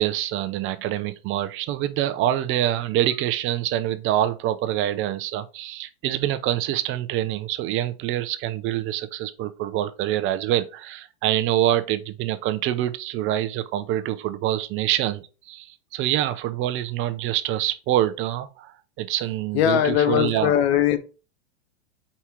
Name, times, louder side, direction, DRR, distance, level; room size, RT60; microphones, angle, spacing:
voice 1, 0.0-20.5, right 13 dB, 35° right, 0.8 m, -25 dB
voice 2, 19.5-21.0, left 10 dB, 65° left, 1.1 m, -20 dB
4.9 x 4.2 x 4.5 m
hypercardioid pair, 115°, 34 cm